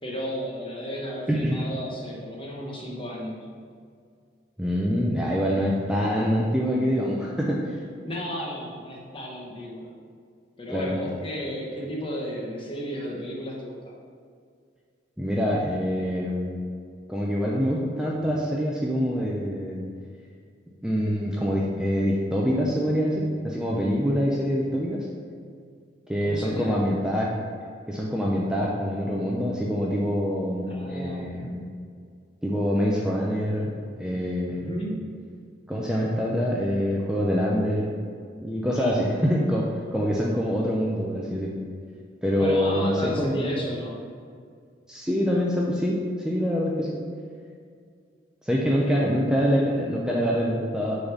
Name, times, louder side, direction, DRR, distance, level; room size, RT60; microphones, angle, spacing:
voice 1, 0.0-3.5 5.2-5.4 8.0-9.9 10.6-13.9 26.2-26.9 30.7-31.3 34.5-35.1 38.7-39.1 42.4-44.0 48.8-49.1, equal, 30° left, -2 dB, 1.2 m, -34 dB
voice 2, 1.3-1.6 4.6-7.6 10.7-11.0 15.2-16.6 17.1-19.8 20.8-25.1 26.1-27.3 27.9-31.6 32.4-33.7 34.0-34.7 35.7-37.9 38.4-39.6 39.9-41.5 42.2-43.5 44.9-47.0 48.4-51.0, equal, 5° right, -4 dB, 0.6 m, -25 dB
6.5 x 4.1 x 6.0 m, 2.2 s
head